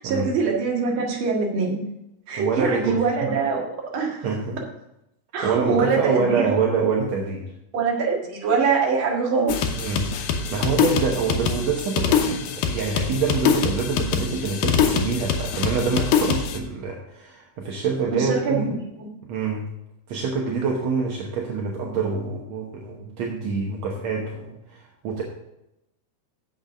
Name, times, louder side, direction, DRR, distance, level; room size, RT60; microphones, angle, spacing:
voice 1, 0.0-1.8 2.3-3.6 3.9-4.3 5.3-6.5 7.7-9.6 18.1-18.7 19.0-19.1, right 5 dB, 45° right, -1 dB, 1.9 m, -23 dB
voice 2, 2.4-3.3 4.2-4.6 5.4-7.4 9.8-10.1 10.5-18.7 19.3-19.7 20.1-25.2, right 5 dB, 70° right, -1 dB, 1.6 m, -26 dB
sound 1, 9.5-16.6, left 7 dB, 80° left, 2.9 m, -24 dB
7.9 x 6.9 x 6.3 m, 0.86 s
omnidirectional pair, 4.5 m